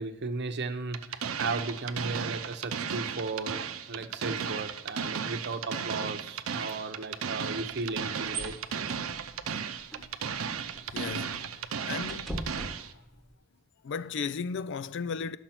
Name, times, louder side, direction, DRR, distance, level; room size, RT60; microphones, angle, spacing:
voice 1, 0.0-3.6 3.9-8.6, right 3 dB, 55° right, 0.8 m, -35 dB
sound 1, 0.9-12.9, right 7 dB, 90° right, 0.6 m, -35 dB
sound 2, 7.6-13.4, right 2 dB, ahead, 1.1 m, -43 dB
voice 2, 10.9-11.6 11.9-12.3 13.8-15.4, left 5 dB, 60° left, 0.4 m, -35 dB
10.5 x 6.6 x 5.8 m
head